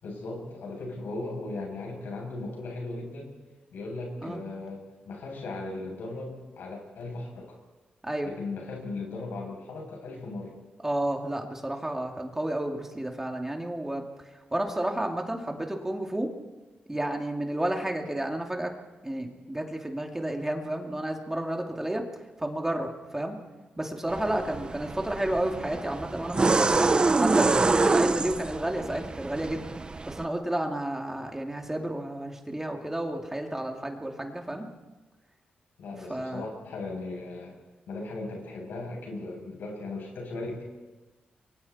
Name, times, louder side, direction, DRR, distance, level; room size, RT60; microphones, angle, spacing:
voice 1, 0.0-3.3 3.7-7.6 8.2-10.5 24.2-24.5 35.8-37.6 37.9-40.6, left 2 dB, 90° left, 0 dB, 7.6 m, -37 dB
voice 2, 10.8-14.0 14.5-16.3 16.9-18.8 19.0-22.1 22.4-23.4 23.8-29.7 30.0-34.7 36.1-36.5, right 1 dB, 15° right, 2 dB, 2.6 m, -31 dB
sound 1, 24.1-30.2, right 3 dB, 30° right, 0.7 m, -26 dB
29.5 x 23.5 x 4.3 m, 1.2 s
cardioid pair, 90°, 3 cm